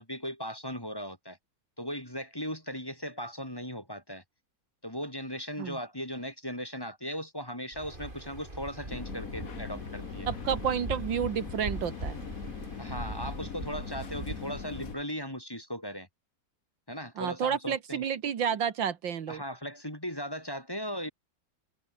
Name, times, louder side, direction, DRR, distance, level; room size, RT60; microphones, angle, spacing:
voice 1, 0.0-1.4 1.8-4.2 4.8-10.3 12.8-16.1 16.9-18.0 19.3-21.1, equal, 10° left, 3.1 m, -38 dB
Waves surf, 7.7-15.0, right 1 dB, 25° right, 5.2 m, -41 dB
sound 1, 8.9-15.0, left 7 dB, 45° left, 1.8 m, -41 dB
voice 2, 10.3-12.2 17.2-19.4, right 8 dB, 75° right, 2.2 m, -30 dB
omnidirectional pair, 2.1 m